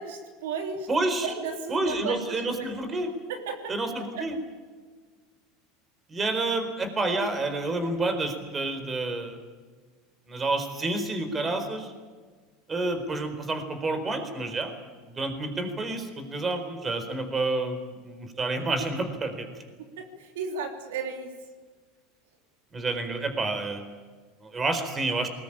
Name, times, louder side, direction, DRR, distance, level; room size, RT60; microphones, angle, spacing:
voice 1, 0.0-0.9 1.2-2.9 3.3-3.7 4.1-4.2 20.0-21.3, right 5 dB, 85° right, 4 dB, 3.2 m, -34 dB
voice 2, 0.9-1.3 1.7-3.1 3.7-4.4 6.1-9.4 10.3-11.9 12.7-14.7 15.0-19.5 22.7-23.9 24.4-25.3, right 2 dB, 25° right, 8 dB, 4.3 m, -29 dB
20.5 x 20.5 x 8.9 m, 1.5 s
supercardioid pair, 105°, 0 cm